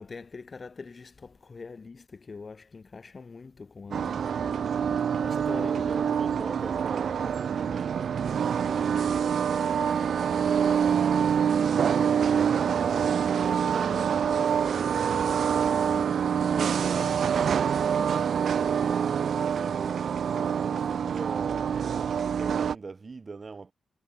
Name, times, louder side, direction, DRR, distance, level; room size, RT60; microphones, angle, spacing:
voice 1, 0.0-4.3 5.2-6.7 16.8-17.2, left 4 dB, 30° left, 0.7 m, -43 dB
sound 1, 3.8-9.3, left 7 dB, 50° left, 1.8 m, -51 dB
sound 2, 3.9-22.8, right 7 dB, 55° right, 0.5 m, -26 dB
voice 2, 5.0-12.5 13.0-20.1 20.6-23.7, right 4 dB, 30° right, 1.7 m, -43 dB
wide cardioid pair, 155°, 0 cm